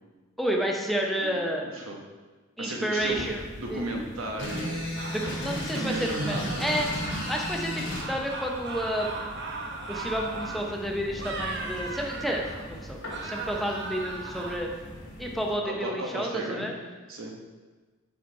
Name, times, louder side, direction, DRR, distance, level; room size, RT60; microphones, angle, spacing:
voice 1, 0.4-1.6 2.6-3.4 3.7-3.8 4.4-4.5 5.1-7.0 7.3-9.2 9.9-12.4 12.7-14.7 15.2-16.7, equal, ahead, 0 dB, 0.6 m, -30 dB
voice 2, 1.2-2.0 2.6-3.3 3.6-4.9 5.7-6.6 15.4-16.7 17.1-17.3, right 1 dB, 85° right, 0 dB, 1.1 m, -35 dB
sound 1, 3.0-15.5, equal, 85° left, 1.9 m, -43 dB
sound 2, 4.4-8.1, left 1 dB, 60° left, 1.3 m, -33 dB
sound 3, 5.0-7.6 7.9-10.8 11.2-12.7 13.1-14.6, right 3 dB, 60° right, 0.8 m, -38 dB
5.0 x 4.4 x 4.6 m, 1.3 s
head